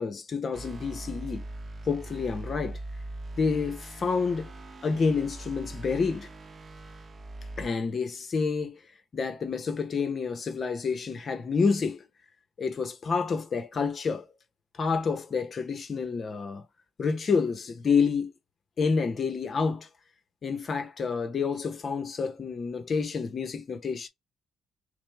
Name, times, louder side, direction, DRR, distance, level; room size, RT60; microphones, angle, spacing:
voice 1, 0.0-1.5 1.9-2.8 3.4-4.5 4.8-6.3 7.6-8.8 9.1-12.0 12.6-14.3 14.8-16.6 17.0-18.3 18.8-19.9 20.4-24.1, left 5 dB, 45° left, 0.8 m, -28 dB
sound 1, 0.5-7.7, right 2 dB, 40° right, 0.7 m, -41 dB
6.1 x 2.0 x 3.3 m
cardioid pair, 90°, 0 cm